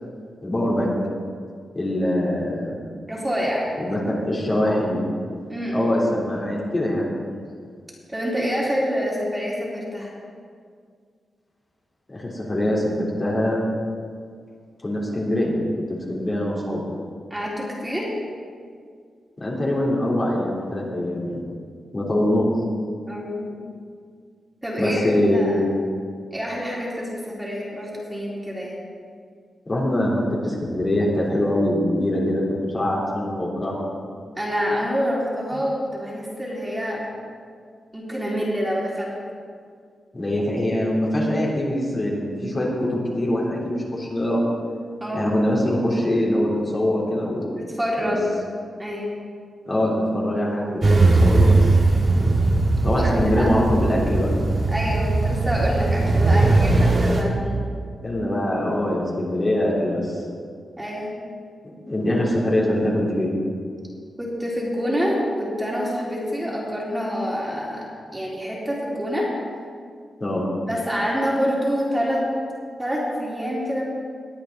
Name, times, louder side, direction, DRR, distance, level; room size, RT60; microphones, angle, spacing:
voice 1, 0.4-0.9 1.7-2.7 3.9-5.0 5.7-7.1 12.1-13.6 14.8-16.8 19.4-21.4 21.9-22.5 24.8-25.6 29.7-32.4 32.7-33.8 35.5-35.6 40.1-44.4 45.1-47.6 48.0-48.1 49.7-51.7 52.8-54.3 56.7-56.8 58.0-60.2 61.9-63.3 70.2-70.4, left 1 dB, 30° left, -5 dB, 3.3 m, -23 dB
voice 2, 3.1-3.7 5.5-5.9 8.1-10.1 17.3-18.1 23.1-23.5 24.6-25.6 26.3-28.8 34.4-37.1 37.9-39.1 45.0-45.3 47.6-48.3 48.8-49.1 52.9-53.5 54.7-57.6 60.8-61.1 64.2-67.8 68.1-69.3 70.7-72.2 72.8-73.8, equal, 10° right, -5 dB, 3.2 m, -26 dB
sound 1, 50.8-57.2, right 2 dB, 45° right, 1.8 m, -19 dB
20.5 x 8.7 x 4.0 m, 2.1 s
cardioid pair, 95°, 0 cm